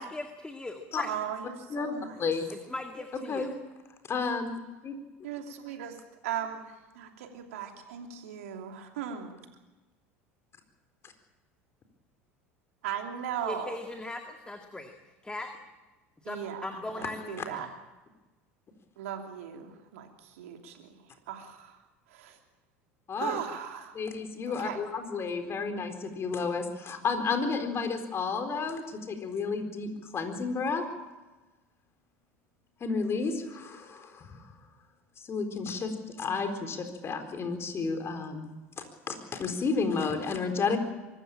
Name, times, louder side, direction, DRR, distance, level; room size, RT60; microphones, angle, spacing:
voice 1, 0.0-1.1 2.5-3.5 13.4-14.9 15.2-15.5 16.2-16.4 16.6-17.7, left 2 dB, 10° left, 5 dB, 2.1 m, -39 dB
voice 2, 1.0-2.2 5.2-9.4 12.8-13.8 16.2-17.7 19.0-21.0 21.3-21.8 22.1-22.4 23.2-24.0 24.5-24.8, right 9 dB, 75° right, 4 dB, 3.0 m, -38 dB
voice 3, 2.2-2.6 3.3-3.5 4.1-4.5 4.8-4.9 23.1-23.4 23.9-30.8 32.8-34.4 35.3-35.9 36.2-38.5 39.1-40.8, left 4 dB, 35° left, 6 dB, 4.1 m, -31 dB
23.5 x 14.5 x 8.8 m, 1.1 s
hypercardioid pair, 80°, 7 cm